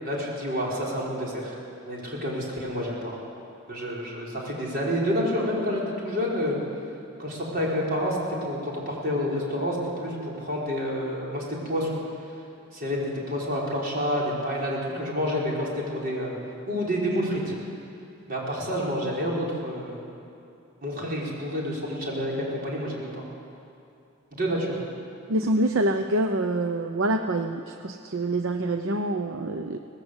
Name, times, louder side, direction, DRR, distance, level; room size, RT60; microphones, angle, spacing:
voice 1, 0.0-1.6 1.8-3.2 3.7-6.6 7.2-12.0 12.7-16.3 16.7-17.5 18.3-20.0 20.8-23.2 24.3-24.8, equal, 45° right, -4 dB, 5.3 m, -29 dB
voice 2, 25.3-29.8, right 1 dB, 70° right, 6 dB, 0.8 m, -26 dB
24.0 x 18.5 x 8.2 m, 2.6 s
head